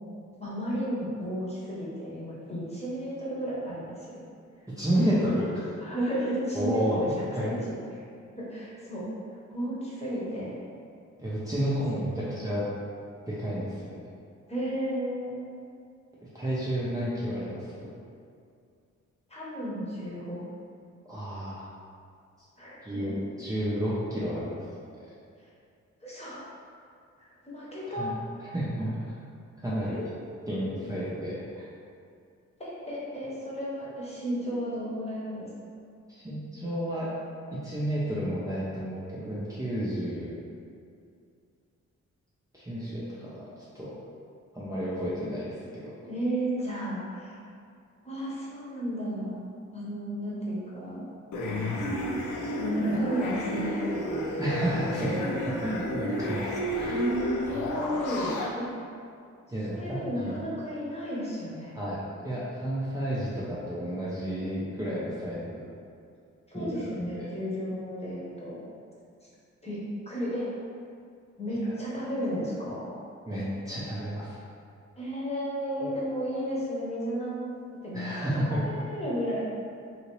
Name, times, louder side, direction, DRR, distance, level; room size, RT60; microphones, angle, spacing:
voice 1, 0.4-4.2 5.8-7.1 7.4-7.8 8.4-9.1 9.5-10.6 11.9-12.3 14.5-15.4 19.3-20.4 22.6-23.0 25.4-25.5 26.0-26.4 27.2-28.1 29.8-30.1 32.6-35.5 46.0-47.4 48.0-51.0 52.6-54.3 55.0-55.8 56.9-58.3 58.6-58.7 59.7-61.8 66.5-68.6 69.6-70.5 71.4-72.8 75.0-77.5 77.8-78.1 78.5-79.4, equal, 20° left, -7 dB, 1.0 m, -33 dB
voice 2, 4.8-5.7 6.5-7.0 7.3-7.5 11.2-12.7 13.3-14.0 16.2-17.9 21.0-21.6 22.8-24.7 27.9-28.1 28.5-29.1 29.6-30.0 30.5-31.6 36.1-37.1 37.5-40.3 42.5-43.4 43.7-43.9 44.5-45.9 54.4-57.0 59.5-60.3 61.7-65.6 66.5-67.3 71.6-71.7 73.3-74.4 77.9-78.6, equal, 10° right, -9 dB, 0.5 m, -31 dB
sound 1, 51.3-58.5, left 1 dB, 90° left, 0.5 m, -31 dB
2.8 x 2.7 x 3.0 m, 2.4 s
cardioid pair, 80°, 30 cm